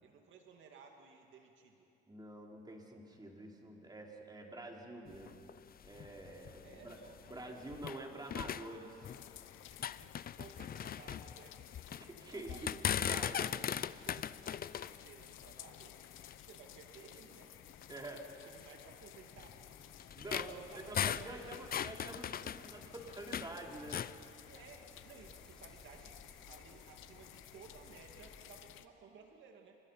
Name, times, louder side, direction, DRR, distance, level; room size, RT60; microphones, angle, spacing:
voice 1, 0.0-1.9 6.6-7.6 8.4-8.5 9.7-11.6 11.8-12.9 13.3-15.9 16.4-17.5 18.5-19.7 20.2-21.5 24.4-29.8, right 5 dB, 75° right, 2 dB, 2.3 m, -58 dB
voice 2, 2.1-5.4 5.8-7.0 7.3-9.2 12.0-13.4 17.9-18.3 20.2-24.0, right 2 dB, 20° right, 0 dB, 4.2 m, -47 dB
sound 1, 5.1-8.0 8.3-9.4 9.7-12.1 12.5-16.5 17.1-17.2 17.7-17.8 18.6-23.5 23.8-24.2, left 9 dB, 50° left, 0.6 m, -39 dB
sound 2, 9.0-28.9, left 13 dB, 90° left, 0.9 m, -56 dB
sound 3, 19.4-28.4, left 1 dB, 5° left, 7.0 m, -61 dB
30.0 x 26.5 x 5.7 m, 2.8 s
cardioid pair, 90°, 20 cm